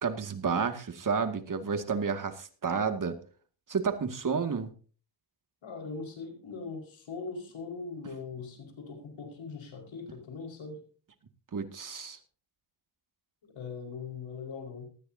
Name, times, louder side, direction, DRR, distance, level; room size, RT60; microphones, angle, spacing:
voice 1, 0.0-3.2 3.7-4.7 11.5-12.2, right 5 dB, 40° right, 7 dB, 2.3 m, -31 dB
voice 2, 5.6-10.8 13.4-14.9, left 4 dB, 70° left, 3 dB, 5.3 m, -41 dB
19.0 x 13.5 x 2.8 m, 0.40 s
cardioid pair, 70°, 49 cm